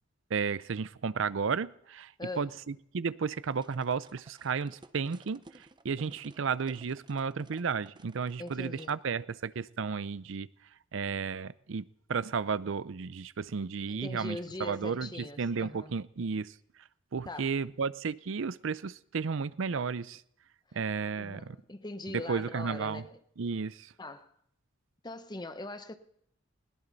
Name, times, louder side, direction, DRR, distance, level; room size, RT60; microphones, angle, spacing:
voice 1, 0.3-10.5 10.9-16.5 17.1-20.2 20.7-21.6 22.1-23.0 23.4-23.9, right 5 dB, 65° right, 0.5 m, -33 dB
voice 2, 2.2-2.5 8.4-9.0 13.9-16.0 17.3-17.6 20.7-20.8 21.1-23.2 24.0-24.3 25.0-25.9, left 2 dB, 20° left, 0.9 m, -41 dB
sound 1, 3.5-9.0, right 2 dB, 20° right, 0.7 m, -56 dB
20.5 x 17.5 x 4.0 m
head